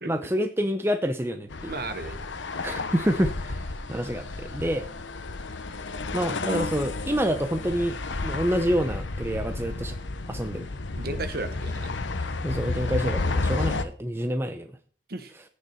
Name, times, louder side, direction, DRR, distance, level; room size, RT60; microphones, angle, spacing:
voice 1, 0.1-1.7 2.6-3.6 3.9-4.8 6.1-8.0 8.2-10.0 10.3-10.7 12.4-14.7, equal, 10° right, 7 dB, 0.7 m, -27 dB
sound 1, 1.5-13.8, left 3 dB, 75° left, 1.0 m, -31 dB
voice 2, 1.7-2.2 10.9-11.9 15.1-15.3, right 2 dB, 55° right, 10 dB, 1.3 m, -34 dB
15.5 x 6.5 x 4.4 m, 0.43 s
head